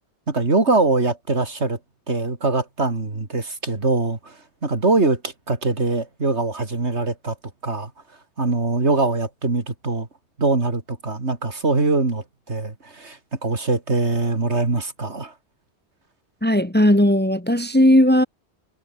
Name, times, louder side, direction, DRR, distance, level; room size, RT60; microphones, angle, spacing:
voice 1, 0.3-1.8 2.1-4.4 4.6-7.4 7.6-7.9 8.4-10.1 10.4-15.3, right 3 dB, 80° right, 3.6 m, -22 dB
voice 2, 16.4-18.3, left 1 dB, 10° left, 1.8 m, -16 dB
omnidirectional pair, 1.1 m